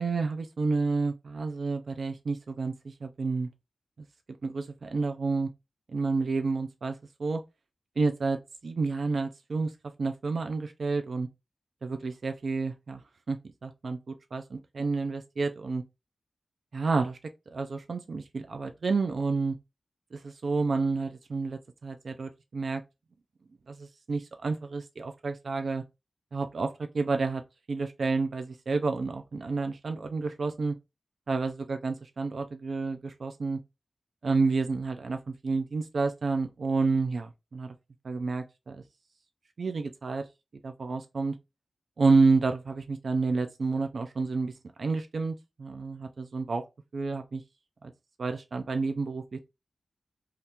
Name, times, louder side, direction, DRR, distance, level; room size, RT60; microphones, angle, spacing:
voice 1, 0.0-3.5 4.4-5.5 5.9-7.4 8.0-9.7 10.0-11.3 11.8-13.0 13.3-15.8 16.7-17.2 17.5-19.6 20.1-22.8 23.7-25.8 26.3-27.4 27.7-30.7 31.3-33.6 34.2-37.7 38.0-38.8 39.6-40.2 40.6-41.3 42.0-44.5 44.8-46.6 46.9-47.4 47.8-47.9 48.2-49.4, right 4 dB, 60° right, 0.4 m, -29 dB
2.8 x 2.4 x 3.4 m
wide cardioid pair, 125°, 0 cm